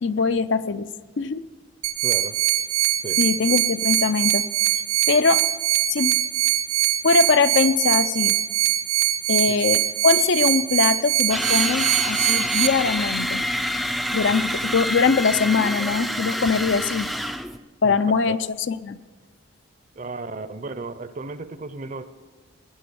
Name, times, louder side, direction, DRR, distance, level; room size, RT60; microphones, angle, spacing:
voice 1, 0.0-0.9 1.2-1.4 3.2-4.5 5.1-5.5 5.9-6.2 7.0-8.4 9.3-13.4 14.1-17.1 17.8-18.4 18.7-19.0, left 4 dB, 60° left, 13 dB, 0.5 m, -22 dB
sound 1, 1.8-12.7, right 14 dB, 85° right, 0.9 m, -22 dB
voice 2, 2.0-2.4 3.0-3.2 17.8-18.0 18.3-18.4 20.0-22.1, right 3 dB, 35° right, 13 dB, 0.6 m, -34 dB
sound 2, 11.3-17.6, equal, ahead, 0.4 m, -27 dB
18.0 x 10.0 x 6.9 m, 1.4 s
head